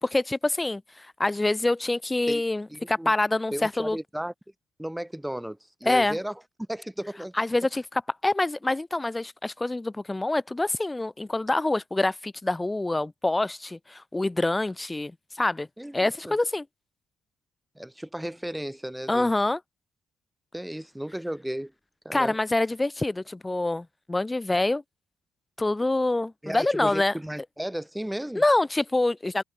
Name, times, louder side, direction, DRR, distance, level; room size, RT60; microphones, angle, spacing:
voice 1, 0.0-4.0 5.8-6.2 7.4-15.7 15.9-16.6 19.1-19.6 22.1-24.8 25.6-27.1 28.3-29.4, left 2 dB, 15° left, 1.1 m, -26 dB
voice 2, 2.7-3.1 3.5-4.3 4.8-6.4 6.7-7.3 15.8-16.4 17.8-19.3 20.5-21.7 22.0-22.4 26.4-28.4, right 1 dB, 5° right, 5.9 m, -34 dB
cardioid pair, 90°, 0 cm